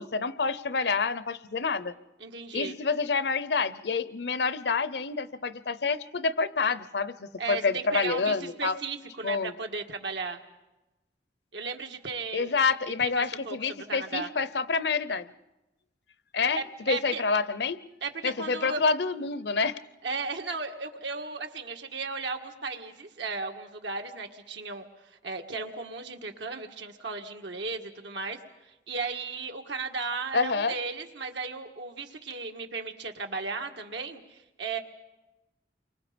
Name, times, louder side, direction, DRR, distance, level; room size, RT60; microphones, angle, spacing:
voice 1, 0.0-1.9 2.5-8.8 9.2-9.5 12.3-15.3 16.3-16.6 16.9-17.8 18.2-19.7 30.3-30.7, left 4 dB, 65° left, 15 dB, 0.7 m, -28 dB
voice 2, 2.2-2.8 7.4-10.4 11.5-12.5 13.0-14.3 16.5-17.2 18.0-18.8 20.0-24.8 25.2-28.4 28.9-34.8, right 4 dB, 85° right, 4 dB, 1.8 m, -35 dB
29.0 x 24.5 x 5.2 m, 1.0 s
head